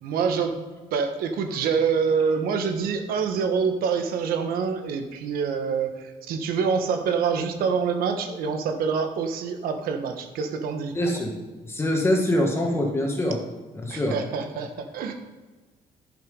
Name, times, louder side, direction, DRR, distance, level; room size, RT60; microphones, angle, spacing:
voice 1, 0.0-0.6 0.9-10.9 13.9-15.1, right 6 dB, 80° right, 6 dB, 1.3 m, -26 dB
voice 2, 10.9-11.3 11.6-13.4 13.8-14.2, left 1 dB, 15° left, 1 dB, 1.6 m, -24 dB
11.5 x 6.7 x 5.3 m, 1.3 s
cardioid pair, 175°, 15 cm